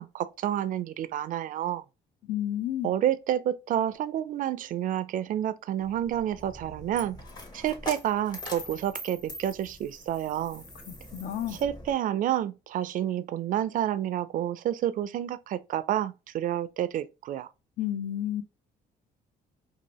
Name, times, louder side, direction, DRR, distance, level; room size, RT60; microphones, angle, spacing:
voice 1, 0.0-1.8 2.8-7.2 7.5-10.6 11.5-17.5, right 11 dB, 55° right, 0.4 m, -29 dB
voice 2, 2.3-2.9 10.9-11.6 17.8-18.4, left 11 dB, 55° left, 0.6 m, -31 dB
Coin (dropping), 5.8-11.9, left 1 dB, 25° left, 0.9 m, -43 dB
2.7 x 2.6 x 3.0 m
cardioid pair, 110°, 17 cm